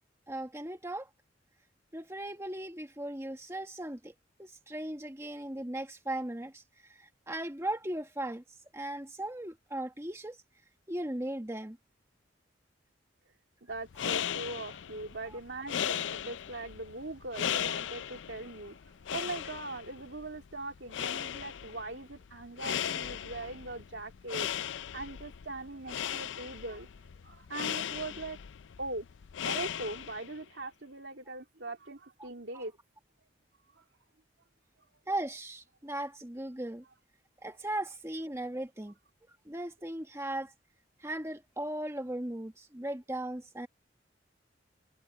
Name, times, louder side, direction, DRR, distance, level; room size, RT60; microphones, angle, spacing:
voice 1, 0.3-1.1 1.9-4.1 4.4-8.4 8.7-10.4 10.9-11.8 15.3-15.4 26.0-26.2 32.2-32.3 32.5-32.6 35.1-36.8 37.4-39.0 39.4-40.5 41.0-43.7, right 1 dB, 15° right, 1.4 m, -37 dB
voice 2, 13.6-24.5 24.9-26.9 27.2-28.4 28.8-29.1 29.4-32.7 33.8-33.9, right 2 dB, 75° right, 3.0 m, -41 dB
sound 1, 13.7-30.4, left 9 dB, 80° left, 0.4 m, -37 dB
head